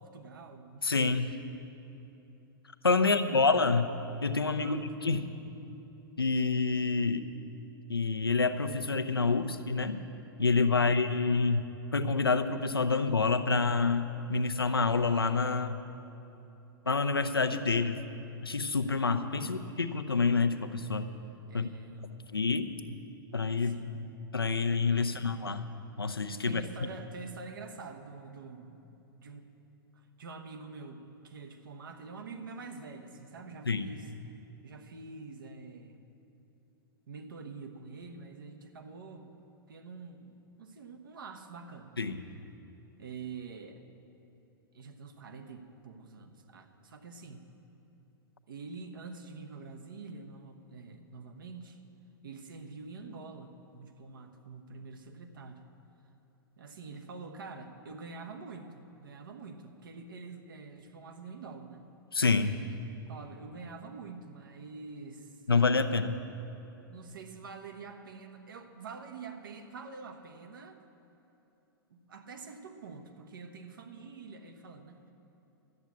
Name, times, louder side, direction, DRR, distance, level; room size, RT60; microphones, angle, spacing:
voice 1, 0.0-0.9 3.0-3.5 4.6-4.9 10.7-11.0 19.3-20.1 21.5-22.3 22.8-24.1 26.4-28.8 29.2-29.5 29.9-34.4 34.6-36.0 37.1-39.3 39.7-41.9 43.0-43.8 44.7-47.4 48.5-51.8 52.2-55.6 56.6-61.9 63.1-65.4 66.9-70.8 71.9-75.1, right 4 dB, 65° right, 5 dB, 1.2 m, -46 dB
voice 2, 0.8-1.4 2.8-3.9 4.2-5.2 6.2-7.3 7.9-10.0 10.4-11.7 11.9-15.8 16.9-18.0 18.4-21.1 21.5-21.7 22.3-22.7 23.3-23.8 24.3-25.7 26.0-26.6 33.7-33.9 42.0-42.2 62.1-62.5 65.5-66.1, left 4 dB, 80° left, 8 dB, 0.7 m, -27 dB
12.0 x 8.2 x 8.5 m, 2.9 s
figure-of-eight pair, 100°, 12 cm